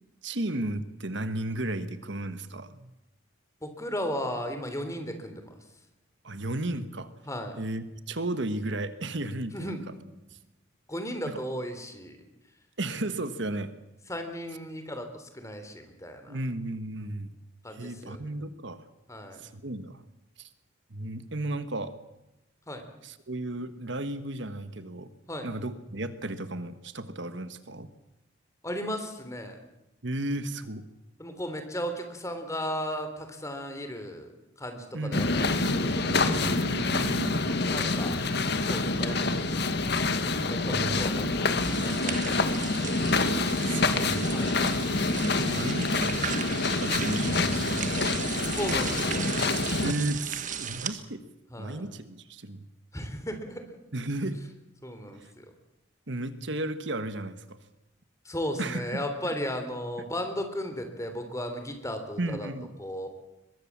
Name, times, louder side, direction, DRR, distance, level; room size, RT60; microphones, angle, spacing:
voice 1, 0.2-2.9 6.2-7.1 7.6-9.8 10.3-10.4 11.3-11.4 12.8-13.7 16.3-17.3 17.7-18.8 19.4-20.0 20.4-20.5 20.9-21.9 23.0-25.1 25.4-27.9 30.0-30.8 34.9-35.3 36.2-37.4 40.7-41.0 43.4-44.4 45.2-46.2 46.8-48.2 49.8-51.2 51.6-52.6 53.9-54.4 55.2-55.3 56.1-57.6 58.6-59.0 59.2-59.3 62.2-62.7, right 1 dB, 60° right, 11 dB, 1.4 m, -34 dB
voice 2, 3.6-5.6 7.3-7.5 9.5-9.8 10.9-12.1 14.1-16.4 17.6-18.2 19.1-19.5 22.7-22.8 25.3-25.5 28.6-29.6 31.2-34.3 34.6-36.2 37.7-38.2 38.6-39.3 40.5-42.5 44.3-44.6 48.5-49.3 51.5-51.8 52.9-53.7 54.8-55.5 58.3-62.5 62.8-63.1, equal, 15° left, 7 dB, 3.4 m, -35 dB
sound 1, 35.1-49.9, left 3 dB, 55° left, 1.8 m, -27 dB
sound 2, 41.6-50.9, right 7 dB, 40° right, 1.6 m, -36 dB
23.0 x 22.0 x 7.4 m, 0.93 s
head